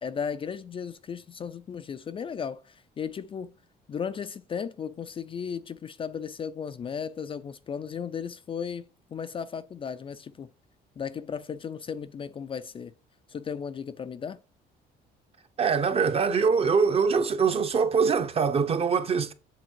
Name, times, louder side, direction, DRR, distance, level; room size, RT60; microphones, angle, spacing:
voice 1, 0.0-3.5 3.9-10.5 11.0-12.9 13.3-14.4, left 7 dB, 30° left, 0.4 m, -35 dB
voice 2, 15.6-19.3, right 5 dB, 35° right, 0.8 m, -23 dB
7.8 x 3.6 x 4.5 m
cardioid pair, 110°, 17 cm